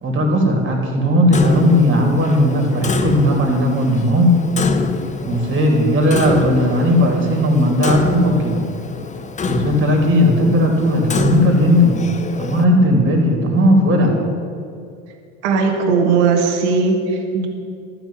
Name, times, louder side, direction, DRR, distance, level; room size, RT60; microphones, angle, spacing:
voice 1, 0.0-4.3 5.3-8.6 9.4-12.0 12.4-14.1, equal, 35° right, 1 dB, 3.2 m, -16 dB
Clock, 1.3-12.6, left 4 dB, 20° left, 0.8 m, -25 dB
voice 2, 15.4-17.5, right 5 dB, 80° right, 3 dB, 1.6 m, -17 dB
12.0 x 6.0 x 9.1 m, 2.4 s
hypercardioid pair, 90°, 34 cm